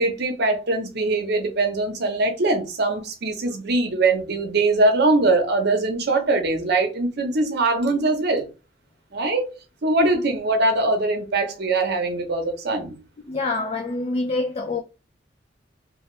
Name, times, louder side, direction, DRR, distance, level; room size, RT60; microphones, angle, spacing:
voice 1, 0.0-8.5 9.1-9.5 9.8-13.0, right 2 dB, 60° right, 0.8 m, -22 dB
voice 2, 13.2-14.8, left 3 dB, 35° left, 0.4 m, -26 dB
2.8 x 2.2 x 3.2 m
head